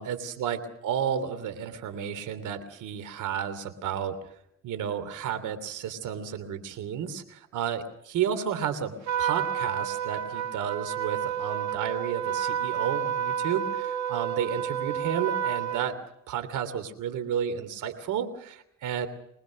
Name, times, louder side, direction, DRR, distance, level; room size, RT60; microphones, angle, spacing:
voice 1, 0.0-4.2 4.6-16.0 16.3-19.1, right 8 dB, 85° right, 11 dB, 3.1 m, -32 dB
Trumpet, 9.1-16.0, right 9 dB, 65° right, 1.8 m, -30 dB
25.0 x 20.0 x 6.4 m, 0.79 s
cardioid pair, 90°, 30 cm